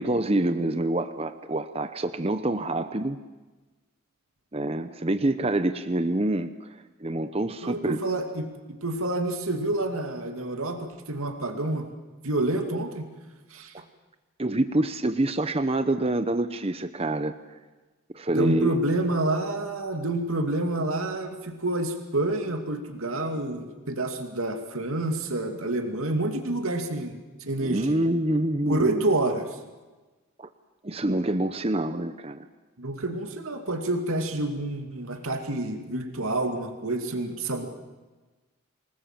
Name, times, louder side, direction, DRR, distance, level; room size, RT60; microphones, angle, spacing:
voice 1, 0.0-3.2 4.5-6.5 7.0-8.0 13.7-13.8 14.4-17.3 18.1-18.8 27.6-29.0 30.4-30.5 30.8-32.5, right 1 dB, 25° right, 10 dB, 0.8 m, -26 dB
voice 2, 7.6-11.9 12.2-13.1 13.5-13.7 18.3-27.1 27.4-28.0 28.7-29.5 32.8-37.7, right 2 dB, 75° right, 5 dB, 2.5 m, -28 dB
27.5 x 20.0 x 7.5 m, 1.2 s
head